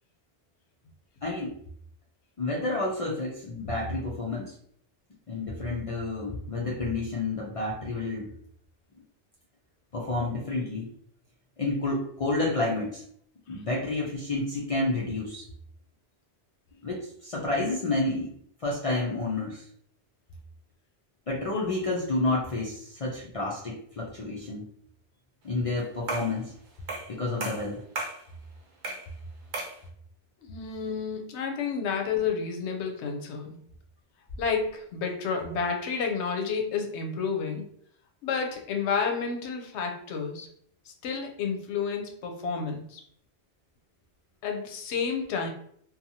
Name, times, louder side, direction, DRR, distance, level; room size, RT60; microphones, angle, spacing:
voice 1, 1.2-1.6 2.4-4.5 5.3-8.3 9.9-10.9 11.6-13.0 13.5-15.5 16.8-18.3 18.6-19.7 21.3-24.7 25.4-26.5 27.1-27.8, left 2 dB, 60° left, -4 dB, 0.3 m, -30 dB
sound 1, 26.1-26.4 26.9-27.1 27.4-28.2 28.8-29.1 29.5-29.8, right 2 dB, 55° right, 0.7 m, -34 dB
voice 2, 30.4-33.6 34.4-37.7 38.2-40.5 41.0-43.0 44.4-45.5, left 5 dB, 90° left, 3 dB, 0.9 m, -30 dB
2.6 x 2.3 x 2.7 m, 0.65 s
omnidirectional pair, 1.1 m